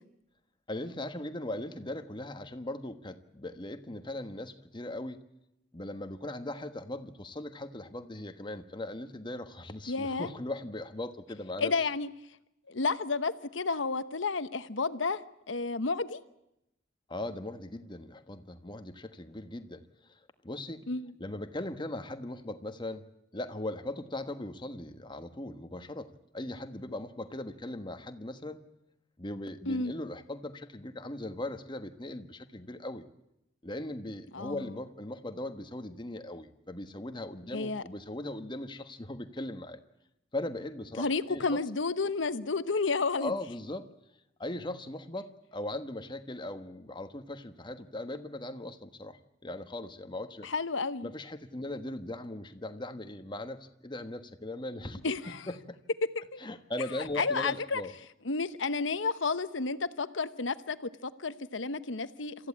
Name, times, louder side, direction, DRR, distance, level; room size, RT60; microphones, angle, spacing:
voice 1, 0.7-5.2 5.7-11.9 17.1-20.9 21.2-23.0 23.3-28.6 29.2-33.0 33.6-39.8 40.3-41.6 43.1-43.9 44.4-50.5 51.0-55.0 55.3-55.8 56.4-57.9, left 1 dB, 25° left, 8 dB, 1.4 m, -39 dB
voice 2, 9.9-10.3 11.6-12.1 12.7-15.2 15.5-16.2 20.9-21.1 29.7-29.9 34.3-34.7 37.5-37.8 41.0-43.3 50.4-51.1 55.0-55.5 56.1-56.4 57.2-57.8 58.2-62.4, left 4 dB, 75° left, 12 dB, 1.0 m, -31 dB
27.0 x 14.5 x 8.7 m, 0.86 s
head